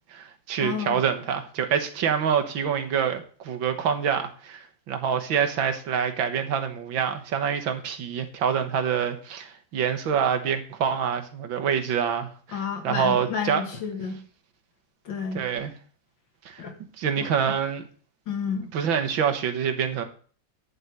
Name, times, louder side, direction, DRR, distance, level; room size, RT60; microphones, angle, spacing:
voice 1, 0.1-13.6 15.3-15.7 16.5-16.6 17.0-17.8 18.7-20.0, right 7 dB, 85° right, 2.0 m, -26 dB
voice 2, 0.6-1.0 12.5-14.2 15.1-15.4 16.6-16.7 17.2-17.5 18.3-18.7, left 6 dB, 80° left, 2.5 m, -31 dB
11.0 x 5.6 x 8.0 m
omnidirectional pair, 2.1 m